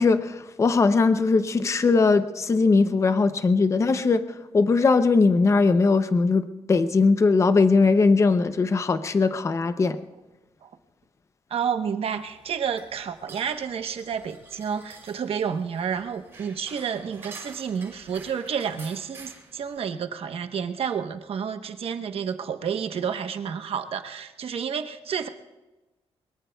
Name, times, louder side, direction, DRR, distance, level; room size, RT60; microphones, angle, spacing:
voice 1, 0.0-4.2 4.5-10.0, left 4 dB, 30° left, 11 dB, 0.6 m, -20 dB
voice 2, 11.5-25.3, right 7 dB, 65° right, 7 dB, 1.0 m, -30 dB
sound 1, 12.1-19.8, right 3 dB, 25° right, 4.9 m, -49 dB
23.0 x 22.0 x 2.3 m, 1.1 s
wide cardioid pair, 180°, 11 cm